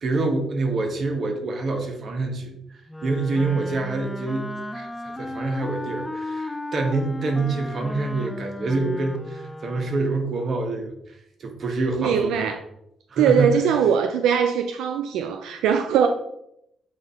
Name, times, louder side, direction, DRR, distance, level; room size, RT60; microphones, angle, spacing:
voice 1, 0.0-10.9 11.4-12.5 13.1-13.7, right 3 dB, 50° right, 1.2 m, -26 dB
Wind instrument woodwind instrument, 2.9-10.2, left 1 dB, 5° left, 0.5 m, -35 dB
voice 2, 12.0-12.6 13.2-16.1, right 7 dB, 85° right, 0.4 m, -21 dB
7.9 x 2.7 x 4.4 m
cardioid pair, 90°, 0 cm